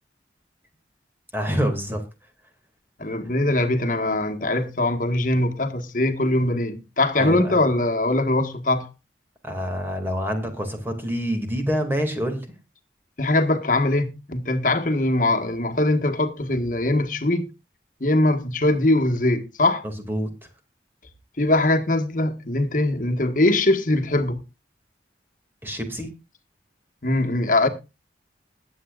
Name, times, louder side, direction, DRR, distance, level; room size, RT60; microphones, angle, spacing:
voice 1, 1.3-2.0 7.2-7.6 9.4-12.5 19.8-20.3 25.6-26.1, equal, 10° right, 2.4 m, -26 dB
voice 2, 3.0-8.9 13.2-17.5 18.0-19.8 21.4-24.4 27.0-27.7, left 2 dB, 50° left, 1.6 m, -22 dB
21.0 x 8.6 x 2.5 m
head